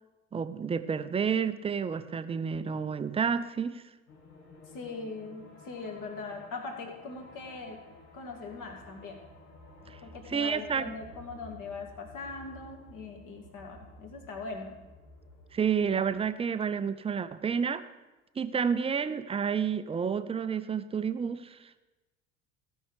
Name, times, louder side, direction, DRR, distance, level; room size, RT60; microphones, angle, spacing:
voice 1, 0.3-3.8 9.9-10.0 10.3-10.8 15.5-17.8 18.4-21.6, right 6 dB, 15° right, 11 dB, 0.5 m, -30 dB
sound 1, 4.1-16.3, left 1 dB, 70° left, 1.9 m, -53 dB
voice 2, 4.7-7.8 8.1-9.2 10.0-14.8, left 3 dB, 50° left, 2 dB, 2.2 m, -41 dB
16.0 x 5.5 x 4.9 m, 1.1 s
figure-of-eight pair, 60°, 41 cm